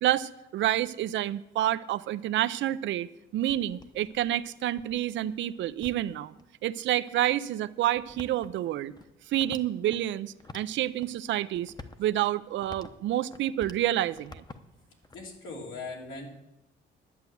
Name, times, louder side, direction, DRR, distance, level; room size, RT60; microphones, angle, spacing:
voice 1, 0.0-6.3 6.6-8.9 9.3-11.7 12.0-14.4, right 13 dB, 70° right, 14 dB, 0.5 m, -28 dB
sound 1, 3.3-6.4 7.1-7.2 7.8-10.0 10.4-11.1 11.5-13.8 14.1-15.4, left 3 dB, 20° left, 0.8 m, -49 dB
voice 2, 15.1-16.3, left 3 dB, 80° left, -1 dB, 3.0 m, -39 dB
11.0 x 7.9 x 6.9 m, 0.90 s
cardioid pair, 90°, 20 cm